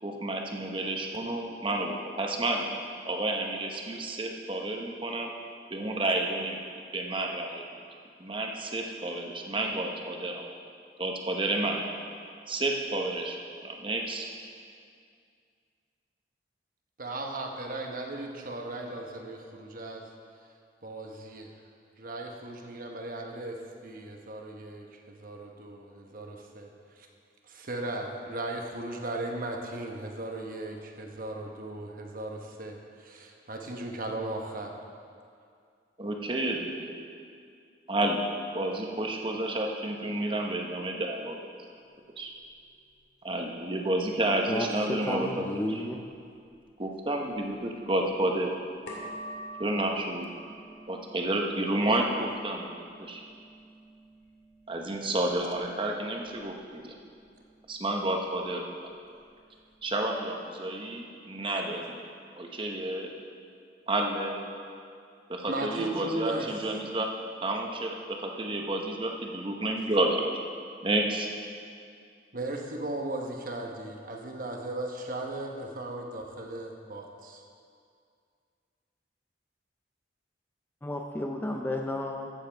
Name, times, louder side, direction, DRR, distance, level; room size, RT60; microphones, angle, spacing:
voice 1, 0.0-2.7 3.0-5.3 5.7-6.6 6.9-7.6 8.2-10.4 11.0-11.9 12.5-14.3 36.0-36.9 37.9-38.3 38.5-41.4 42.2-42.3 43.2-45.7 46.8-48.5 49.6-50.3 50.9-53.2 54.7-56.9 57.7-58.7 59.8-62.0 62.4-63.1 63.9-64.5 65.3-67.1 67.4-70.2 70.8-71.3, right 1 dB, 30° right, 2 dB, 1.0 m, -30 dB
voice 2, 17.0-20.0 20.8-21.5 22.0-27.1 27.5-34.7 65.5-66.5 72.3-77.4, right 2 dB, 50° right, 2 dB, 1.1 m, -37 dB
sound 1, 41.7-60.3, right 1 dB, 70° left, 2.2 m, -50 dB
voice 3, 44.5-46.0 80.8-82.3, left 1 dB, 10° left, 1 dB, 0.6 m, -32 dB
14.5 x 7.4 x 4.6 m, 2.3 s
head